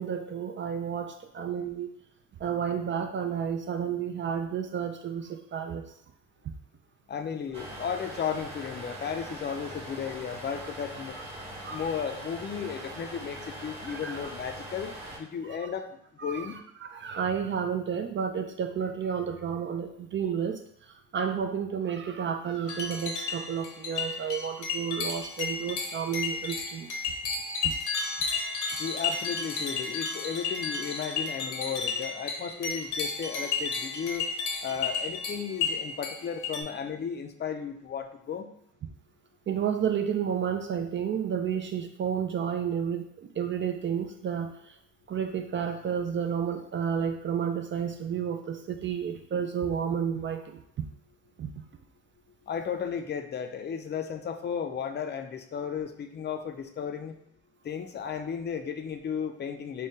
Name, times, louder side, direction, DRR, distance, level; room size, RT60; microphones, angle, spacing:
voice 1, 0.0-1.9 2.4-5.8 11.6-11.8 13.9-14.3 16.2-16.5 16.8-26.9 27.6-27.7 39.5-44.7 45.1-50.8 51.4-51.5, right 7 dB, 40° right, 6 dB, 0.4 m, -31 dB
voice 2, 7.1-11.2 11.7-16.6 28.8-34.3 34.6-38.5 52.5-57.2 57.6-59.9, left 7 dB, 35° left, 7 dB, 0.5 m, -34 dB
sound 1, 7.5-15.2, right 1 dB, 20° right, 1.2 m, -42 dB
sound 2, 22.7-36.6, left 4 dB, 80° left, 0.8 m, -33 dB
3.6 x 2.1 x 4.1 m, 0.72 s
cardioid pair, 90°, 30 cm